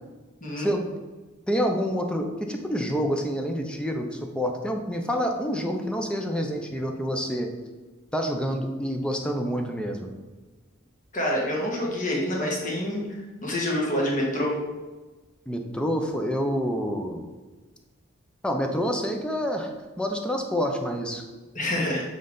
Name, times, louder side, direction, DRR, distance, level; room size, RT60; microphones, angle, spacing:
voice 1, 1.5-7.5 8.1-10.1 15.5-17.3 18.4-19.7 20.0-21.2, equal, 5° left, 3 dB, 0.6 m, -27 dB
voice 2, 11.1-14.5 21.5-22.0, left 1 dB, 40° left, -3 dB, 1.6 m, -27 dB
7.6 x 3.8 x 3.9 m, 1.2 s
head